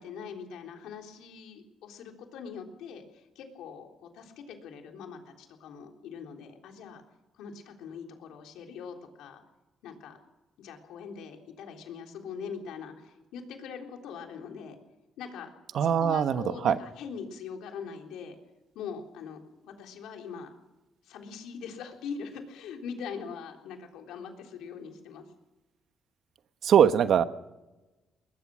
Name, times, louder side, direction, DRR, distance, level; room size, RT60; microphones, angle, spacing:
voice 1, 0.0-7.0 7.4-9.4 9.8-10.2 10.6-14.8 15.2-15.5 15.8-18.4 18.8-20.5 21.0-25.2, left 6 dB, 85° left, 3 dB, 3.7 m, -42 dB
voice 2, 15.7-16.8 26.6-27.2, right 8 dB, 65° right, 11 dB, 1.2 m, -22 dB
21.0 x 21.0 x 6.3 m, 1.1 s
cardioid pair, 90°, 0 cm